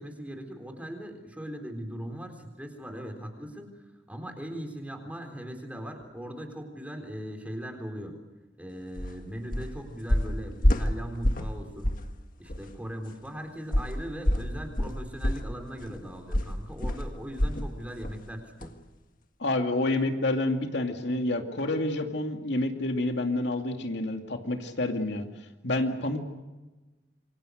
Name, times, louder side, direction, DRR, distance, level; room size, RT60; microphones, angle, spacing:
voice 1, 0.0-3.8 4.1-8.1 8.6-11.9 12.4-18.7, equal, 10° right, 5 dB, 3.9 m, -39 dB
sound 1, 9.0-9.1 9.5-9.8 10.1-11.6 11.8-12.1 12.5-12.6 13.7-17.7 18.0-18.2 18.6-18.7, equal, 50° left, 1.8 m, -27 dB
voice 2, 19.4-25.3 25.6-26.2, left 2 dB, 70° left, 4 dB, 2.4 m, -28 dB
27.5 x 24.0 x 6.5 m, 1.1 s
head